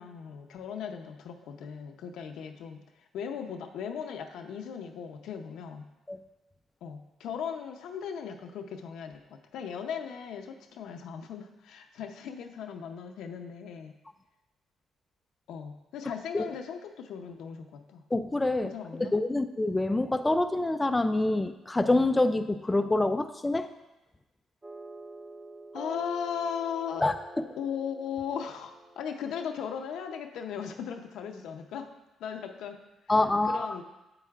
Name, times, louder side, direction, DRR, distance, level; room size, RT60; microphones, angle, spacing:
voice 1, 0.0-2.8 3.1-5.9 6.8-13.9 15.5-18.0 18.6-19.2 25.7-27.0 27.6-31.9 32.2-32.8 33.5-33.8, left 7 dB, 80° left, 5 dB, 0.6 m, -37 dB
voice 2, 18.1-18.7 19.0-23.7 27.0-27.4 33.1-33.8, left 2 dB, 15° left, 8 dB, 0.3 m, -26 dB
sound 1, 24.6-29.7, right 1 dB, 20° right, 0.6 m, -46 dB
8.2 x 7.9 x 2.4 m, 1.0 s
cardioid pair, 90°, 0 cm